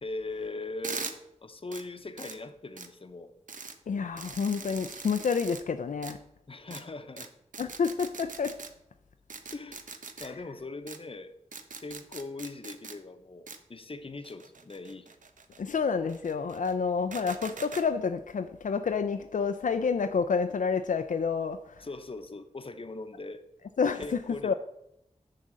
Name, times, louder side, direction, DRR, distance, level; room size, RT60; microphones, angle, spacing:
voice 1, 0.0-1.1 1.4-3.3 6.5-7.3 9.5-9.9 10.2-11.4 11.8-15.1 21.8-23.4 24.0-24.5, left 2 dB, 45° left, 0.8 m, -40 dB
sound 1, 0.8-1.1 1.7-1.8 2.2-2.4 2.8-2.9 3.5-3.7 4.2-5.6 6.0-6.1 6.7-6.8 7.2-7.3 7.5-8.7 9.3-10.3 10.9-11.0 11.5-12.9 13.5-13.6 14.2-15.6 16.1-16.7 17.1-17.8, right 4 dB, 90° right, 0.8 m, -41 dB
voice 2, 3.9-6.2 7.6-8.6 10.2-10.3 15.6-21.6 23.8-24.5, left 5 dB, 85° left, 0.4 m, -29 dB
10.5 x 3.8 x 7.4 m
wide cardioid pair, 70°, 13 cm